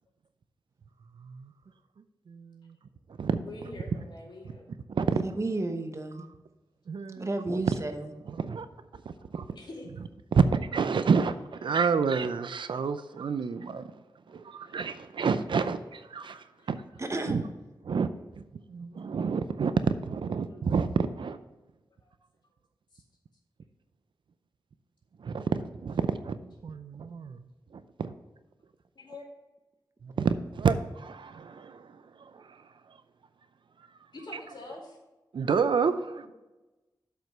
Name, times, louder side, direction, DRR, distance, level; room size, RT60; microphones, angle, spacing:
voice 1, 1.2-1.5 2.3-2.7 3.2-3.4 4.9-5.1 6.9-7.6 8.4-8.7 9.3-9.5 10.3-13.8 14.3-16.8 17.3-17.4 17.9-18.1 18.7-19.7 20.0-20.9 21.2-21.4 25.2-27.4 27.7-28.1 30.0-32.6 35.3-36.3, right 5 dB, 75° right, 11 dB, 0.5 m, -29 dB
voice 2, 3.4-4.7 9.1-9.2 9.6-9.9 16.6-16.7 22.0-22.1 22.9-23.0 29.0-29.2 34.1-35.0 36.2-36.3, left 2 dB, 65° left, -2 dB, 2.4 m, -45 dB
voice 3, 5.1-6.2 7.2-8.1 17.0-17.5, right 2 dB, 35° right, 6 dB, 0.9 m, -32 dB
7.7 x 5.1 x 5.4 m, 1.1 s
wide cardioid pair, 75°, 8 cm